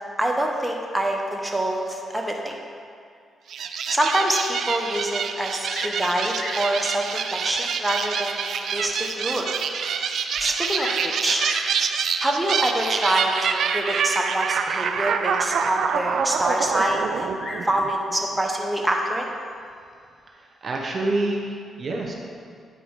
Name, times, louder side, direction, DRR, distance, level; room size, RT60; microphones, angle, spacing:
voice 1, 0.2-2.6 3.9-8.4 8.7-9.5 10.4-11.4 12.2-17.3 17.6-19.3, right 1 dB, 10° right, 0 dB, 1.2 m, -25 dB
sound 1, 3.5-18.1, right 6 dB, 70° right, 0.4 m, -26 dB
Bird vocalization bird call bird song, 5.6-6.0 6.3-6.7 7.6-7.7 8.3-8.4 8.9-9.0 9.2-9.3 10.4-11.1 11.4-11.7 12.7-13.1 16.7-17.7 18.8-19.3, left 2 dB, 45° left, 1.2 m, -36 dB
voice 2, 20.3-22.2, right 2 dB, 50° right, 0 dB, 1.1 m, -27 dB
9.4 x 4.8 x 4.8 m, 2.3 s
supercardioid pair, 55°, 0 cm